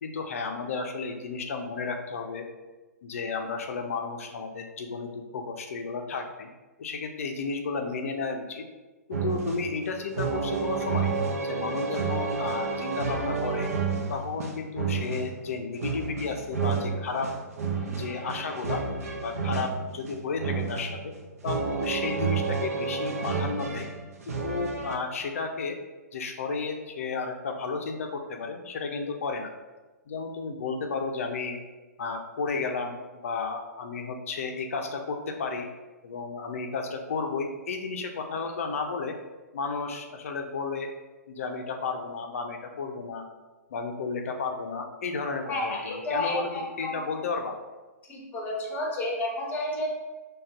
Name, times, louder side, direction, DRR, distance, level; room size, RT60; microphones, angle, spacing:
voice 1, 0.0-2.5 3.0-6.5 6.8-8.6 9.1-11.1 11.4-13.7 14.1-17.3 17.9-18.8 19.1-21.1 21.4-23.9 24.3-25.8 26.1-29.5 30.1-31.6 32.0-35.7 36.0-39.1 39.5-40.9 41.3-43.2 43.7-47.6, left 4 dB, 55° left, 4 dB, 0.5 m, -33 dB
sound 1, 9.1-24.9, right 5 dB, 60° right, 0.6 m, -30 dB
voice 2, 45.5-47.1 48.1-49.9, left 1 dB, 20° left, -1 dB, 0.9 m, -31 dB
6.3 x 2.3 x 2.4 m, 1.2 s
figure-of-eight pair, 115°, 9 cm